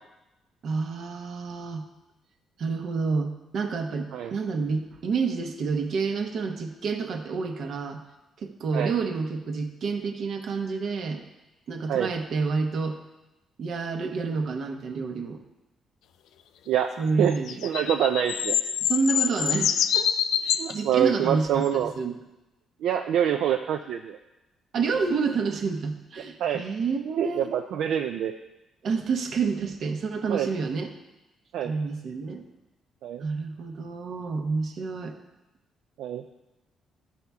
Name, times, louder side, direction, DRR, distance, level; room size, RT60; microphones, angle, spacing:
voice 1, 0.6-1.8 2.6-8.0 8.4-11.2 11.7-13.0 13.6-15.4 17.0-17.6 18.8-20.1 20.4-22.2 24.7-27.5 28.8-30.9 31.6-32.4 33.2-35.2, right 4 dB, 65° right, 5 dB, 0.9 m, -29 dB
sound 1, 17.3-20.7 21.6-21.7, left 9 dB, 85° left, 0.4 m, -25 dB
voice 2, 17.6-18.6 20.6-21.9 22.8-24.2 26.4-26.6 27.1-28.3 30.3-30.5 31.5-31.7 33.0-33.3 36.0-36.2, right 10 dB, 80° right, 5 dB, 0.4 m, -25 dB
12.5 x 4.4 x 3.5 m, 0.99 s
cardioid pair, 90°, 0 cm